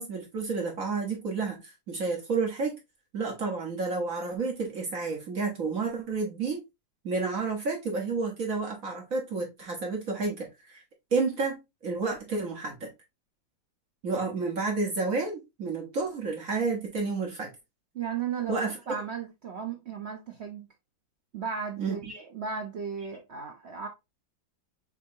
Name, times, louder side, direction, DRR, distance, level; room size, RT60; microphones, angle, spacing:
voice 1, 0.0-2.8 3.1-6.6 7.0-10.8 11.1-12.9 14.0-17.5 18.5-18.8 21.8-22.2, right 4 dB, 50° right, 1.3 m, -30 dB
voice 2, 17.9-20.7 21.3-23.9, right 6 dB, 65° right, 0.6 m, -35 dB
6.0 x 2.8 x 2.7 m
omnidirectional pair, 2.1 m